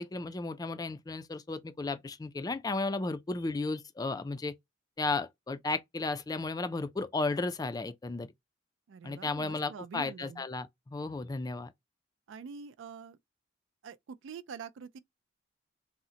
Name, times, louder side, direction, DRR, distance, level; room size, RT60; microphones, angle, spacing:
voice 1, 0.0-4.5 5.0-8.3 9.0-11.7, left 3 dB, 20° left, 0.3 m, -34 dB
voice 2, 8.9-10.4 12.3-13.2 13.8-15.0, right 6 dB, 80° right, 0.4 m, -45 dB
3.7 x 2.1 x 2.7 m
head